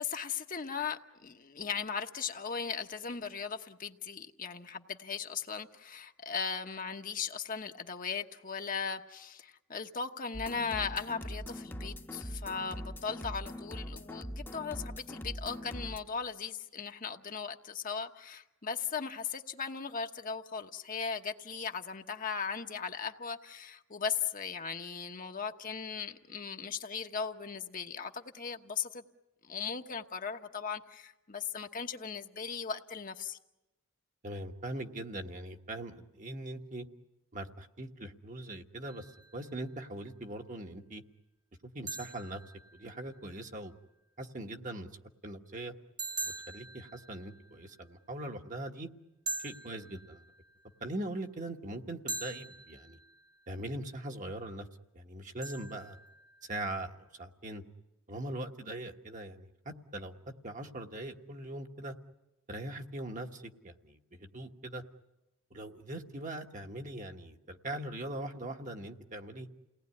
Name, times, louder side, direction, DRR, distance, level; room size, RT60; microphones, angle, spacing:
voice 1, 0.0-29.0 29.4-33.4, left 6 dB, 40° left, 1.1 m, -38 dB
sound 1, 10.3-16.0, equal, 10° left, 1.0 m, -42 dB
voice 2, 34.2-36.8 37.3-39.1 39.3-41.0 41.7-42.4 42.7-43.8 44.2-44.9 45.2-45.7 46.2-48.9 49.4-50.3 50.8-53.0 53.5-54.7 54.9-56.0 56.4-57.6 58.1-60.1 60.4-61.9 62.5-64.8 65.5-69.5, right 1 dB, 40° right, 1.3 m, -41 dB
sound 2, 38.9-39.7 41.9-43.3 46.0-47.8 49.3-50.6 52.1-53.5 55.4-56.6, right 3 dB, 20° right, 1.2 m, -43 dB
29.5 x 18.5 x 9.7 m
head